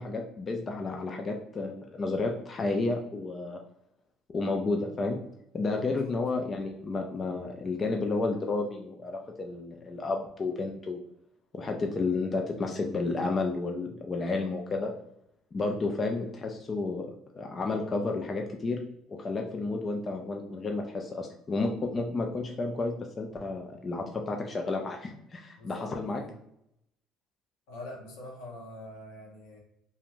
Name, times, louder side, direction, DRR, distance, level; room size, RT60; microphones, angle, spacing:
voice 1, 0.0-3.6 4.3-5.2 5.5-11.0 11.5-14.9 15.5-18.8 19.1-26.2, left 3 dB, 35° left, 2 dB, 0.4 m, -31 dB
voice 2, 5.7-6.1 25.6-26.4 27.7-29.6, left 1 dB, 85° left, -1 dB, 0.8 m, -44 dB
2.5 x 2.1 x 2.9 m, 0.76 s
supercardioid pair, 80°, 0 cm